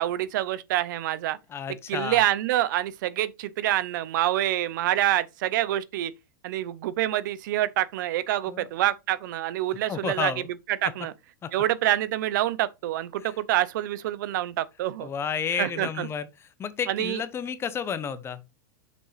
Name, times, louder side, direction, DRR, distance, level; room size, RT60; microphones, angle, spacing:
voice 1, 0.0-1.4 1.9-6.1 6.4-10.3 10.8-11.1 11.5-15.1 15.6-16.1 16.9-17.2, right 13 dB, 70° right, 0.7 m, -26 dB
voice 2, 1.5-2.2 8.5-8.7 9.9-10.5 11.4-11.5 13.2-13.3 15.0-16.3 16.6-18.4, left 7 dB, 25° left, 0.8 m, -31 dB
6.2 x 5.3 x 3.3 m
hypercardioid pair, 125°, 11 cm